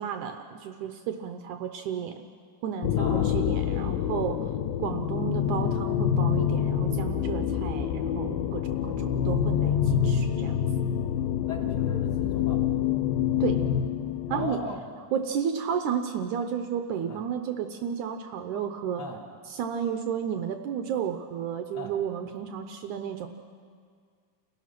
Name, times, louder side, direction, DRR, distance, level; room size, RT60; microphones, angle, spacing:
voice 1, 0.0-2.3 2.6-4.5 4.8-10.6 13.4-13.6 14.3-14.6 15.1-19.1 19.5-23.3, right 8 dB, 80° right, 6 dB, 1.8 m, -32 dB
sound 1, 2.8-14.8, left 9 dB, 75° left, 2.4 m, -27 dB
voice 2, 3.0-3.4 9.6-9.8 11.5-12.7 14.3-14.9 17.1-17.2 19.0-19.2 21.7-21.9, left 2 dB, 30° left, -2 dB, 3.5 m, -38 dB
29.0 x 18.0 x 5.9 m, 2.1 s
omnidirectional pair, 4.6 m